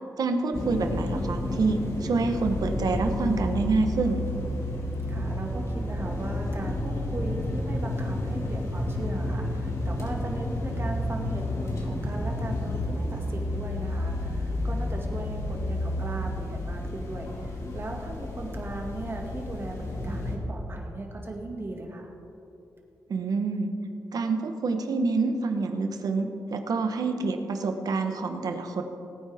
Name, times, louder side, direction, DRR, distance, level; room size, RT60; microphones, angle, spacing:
voice 1, 0.2-4.2 23.1-23.7 24.1-28.8, right 3 dB, 70° right, 5 dB, 1.1 m, -27 dB
sound 1, 0.5-20.4, left 1 dB, 45° left, 2.3 m, -31 dB
voice 2, 5.1-22.1, right 2 dB, 35° right, 1 dB, 2.0 m, -38 dB
19.0 x 9.2 x 3.6 m, 2.8 s
cardioid pair, 90°, 7 cm